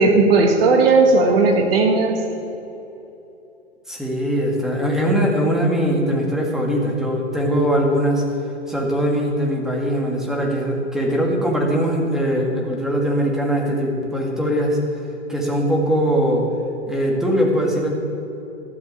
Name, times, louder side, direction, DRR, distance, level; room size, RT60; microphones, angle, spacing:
voice 1, 0.0-2.2, right 3 dB, 55° right, 4 dB, 1.7 m, -15 dB
voice 2, 3.9-8.2 8.7-14.8 15.3-16.5 16.9-17.9, equal, ahead, -1 dB, 2.0 m, -21 dB
13.0 x 6.6 x 8.5 m, 3.0 s
figure-of-eight pair, 115°, 36 cm